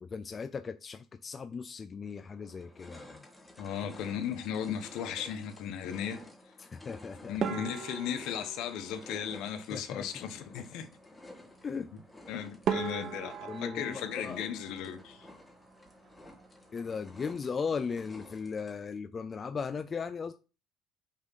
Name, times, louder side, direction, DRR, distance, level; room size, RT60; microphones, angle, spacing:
voice 1, 0.0-3.2 6.6-7.4 9.7-10.1 11.6-11.9 13.5-14.4 16.7-20.3, left 5 dB, 25° left, 0.5 m, -37 dB
sound 1, 1.5-1.6 2.2-19.0, left 1 dB, 10° left, 1.8 m, -53 dB
voice 2, 3.6-6.2 7.3-10.9 11.9-12.0 12.3-15.3, left 8 dB, 70° left, 1.2 m, -36 dB
sound 2, 7.4-9.9 12.1-12.2 12.6-15.4 15.7-16.5 16.8-17.0 17.3-17.4 18.0-18.3, right 8 dB, 50° right, 0.9 m, -38 dB
6.4 x 3.7 x 5.8 m
cardioid pair, 140°, 0 cm